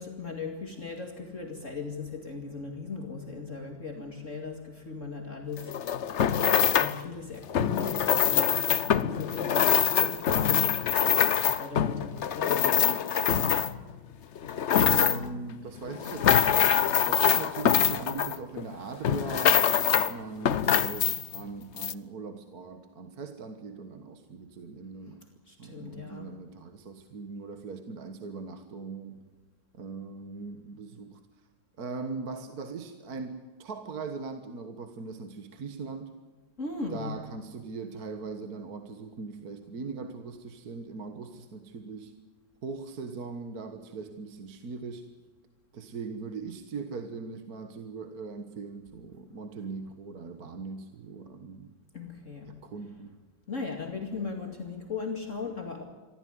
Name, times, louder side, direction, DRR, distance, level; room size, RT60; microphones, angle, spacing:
voice 1, 0.0-5.9 6.8-13.1 25.5-26.4 36.6-37.2 51.9-52.6 53.5-55.8, left 4 dB, 40° left, 3 dB, 2.6 m, -38 dB
sound 1, 5.6-7.0 7.5-13.9 14.4-15.4 15.9-18.7 19.0-20.1 20.5-21.4 21.8-21.9, left 9 dB, 55° left, 0.8 m, -24 dB
voice 2, 14.8-25.2 25.6-29.2 29.7-31.2 31.8-36.1 36.9-42.1 42.6-45.1 45.7-51.7 52.5-53.1, right 4 dB, 55° right, 8 dB, 1.8 m, -40 dB
24.0 x 15.0 x 9.7 m, 1.3 s
omnidirectional pair, 2.1 m